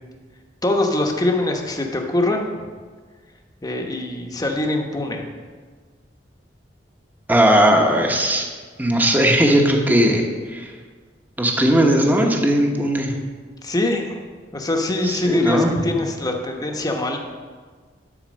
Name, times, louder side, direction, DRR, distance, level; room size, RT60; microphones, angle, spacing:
voice 1, 0.6-2.7 3.6-5.3 13.6-14.2 14.5-17.2, left 2 dB, 20° left, 2 dB, 1.0 m, -23 dB
voice 2, 7.3-8.4 8.8-10.7 11.4-13.2 15.0-15.8, right 1 dB, 10° right, 2 dB, 1.0 m, -18 dB
12.0 x 4.3 x 6.2 m, 1.5 s
head